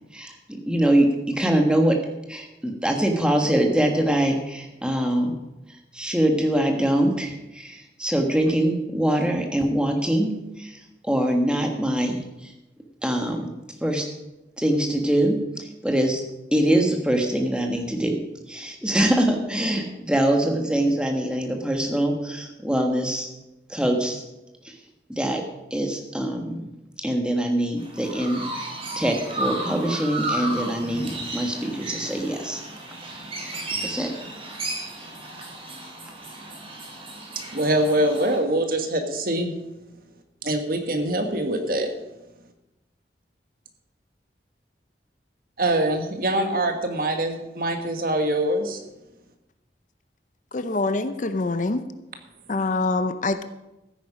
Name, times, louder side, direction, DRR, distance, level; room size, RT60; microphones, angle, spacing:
voice 1, 0.1-2.0 2.3-5.4 5.9-12.5 13.0-13.5 13.8-14.1 14.6-16.2 16.5-18.2 18.5-23.3 23.7-24.2 24.6-24.8 25.1-25.4 25.7-26.7 27.0-32.6 33.8-34.1, right 1 dB, 5° right, 2 dB, 1.5 m, -23 dB
Chirp tweet, 27.8-38.4, right 2 dB, 30° right, 3.2 m, -33 dB
voice 2, 37.3-39.5 40.4-41.9 45.6-48.8, right 1 dB, 55° right, 5 dB, 1.6 m, -24 dB
voice 3, 50.5-51.8 52.5-53.4, left 3 dB, 45° left, 11 dB, 0.6 m, -25 dB
15.0 x 9.2 x 5.0 m, 0.98 s
head